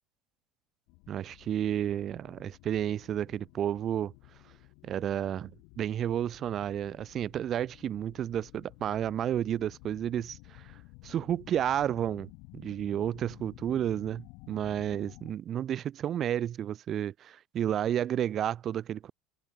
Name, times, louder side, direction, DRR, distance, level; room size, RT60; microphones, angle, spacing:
sound 1, 0.9-15.3, left 31 dB, 55° left, 2.9 m, -53 dB
voice 1, 1.1-4.1 4.8-5.5 5.8-10.7 11.0-19.1, right 10 dB, 40° right, 0.7 m, -31 dB
figure-of-eight pair, 70°, 0 cm